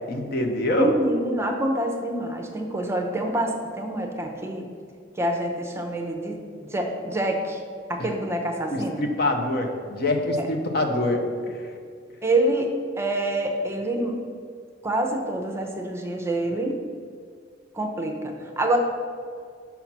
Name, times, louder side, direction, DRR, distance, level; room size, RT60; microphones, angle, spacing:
voice 1, 0.1-0.9 8.7-11.6, left 1 dB, 55° left, 4 dB, 0.8 m, -25 dB
voice 2, 0.7-4.7 5.2-6.4 6.7-7.6 7.9-9.0 10.4-10.5 12.2-14.2 14.8-16.8 17.7-18.8, right 1 dB, 15° right, 2 dB, 0.7 m, -26 dB
5.8 x 5.7 x 5.9 m, 2.1 s
head